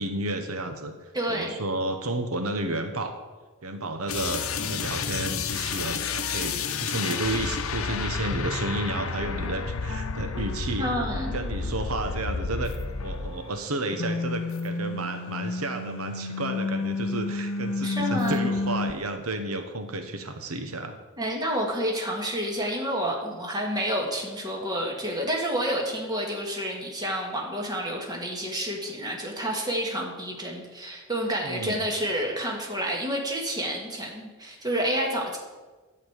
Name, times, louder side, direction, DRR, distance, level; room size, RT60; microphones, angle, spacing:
voice 1, 0.0-3.2 3.6-10.9 11.3-12.7 13.0-21.0 31.4-31.8, right 2 dB, 85° right, 7 dB, 1.0 m, -32 dB
voice 2, 1.1-1.5 10.8-11.3 17.8-18.5 21.2-35.4, equal, 20° right, -1 dB, 1.9 m, -29 dB
sound 1, 4.1-13.6 13.9-18.9, left 4 dB, 75° left, 0.8 m, -30 dB
10.5 x 5.3 x 8.1 m, 1.3 s
head